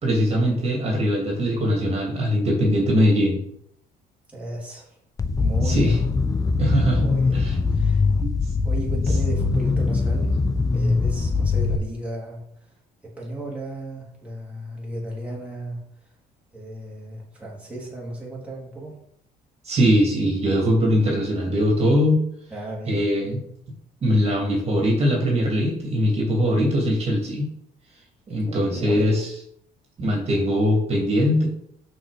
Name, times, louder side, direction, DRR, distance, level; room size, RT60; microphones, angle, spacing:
voice 1, 0.0-3.4 5.6-6.0 6.6-7.5 8.2-8.3 19.6-22.2 22.9-23.4 24.0-27.5 28.3-29.3 30.0-31.5, equal, 40° right, -1 dB, 2.7 m, -21 dB
voice 2, 4.3-5.0 5.4-5.9 7.0-8.1 8.6-12.7 13.0-15.9 16.5-19.0 22.5-23.4 28.4-29.3, right 1 dB, 5° right, -5 dB, 3.1 m, -35 dB
sound 1, 5.2-11.8, left 4 dB, 20° left, 0.7 m, -22 dB
6.3 x 6.0 x 5.0 m, 0.68 s
cardioid pair, 110°, 17 cm